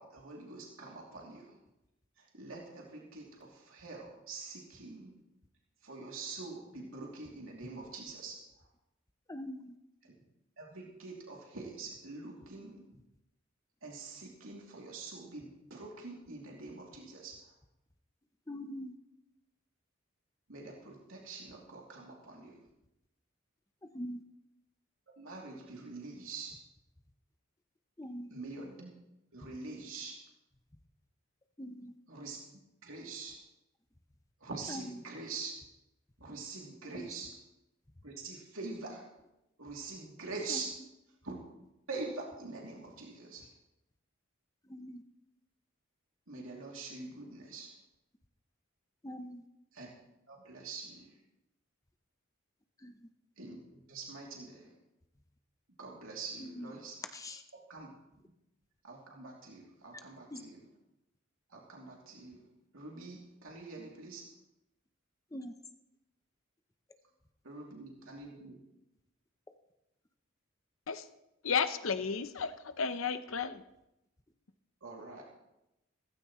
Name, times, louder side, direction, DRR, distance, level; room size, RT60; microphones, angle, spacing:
voice 1, 0.0-1.5 2.2-5.1 5.8-8.4 10.6-12.8 13.8-17.5 20.5-22.6 25.2-26.6 28.3-28.9 29.3-30.2 32.1-32.4 32.8-33.4 34.4-35.5 36.2-37.3 38.0-39.0 39.6-40.7 41.2-41.4 41.9-43.5 46.3-47.7 49.7-49.9 50.3-51.1 53.4-54.7 55.8-57.0 57.7-57.9 58.8-60.6 61.5-62.4 62.7-64.3 67.4-68.6 74.8-75.2, right 3 dB, 80° right, -2 dB, 2.9 m, -45 dB
voice 2, 9.3-9.8 12.9-13.0 18.5-19.0 23.8-24.2 28.0-28.4 31.6-32.0 34.7-35.1 36.8-37.1 40.5-40.7 44.6-45.0 49.0-49.5 52.8-53.1 56.4-56.7 57.1-57.4 59.9-60.0 60.3-60.4 65.3-65.5, equal, 15° left, 7 dB, 0.7 m, -43 dB
voice 3, 71.4-73.6, left 6 dB, 75° left, 11 dB, 0.8 m, -33 dB
16.5 x 15.0 x 3.1 m, 0.90 s
head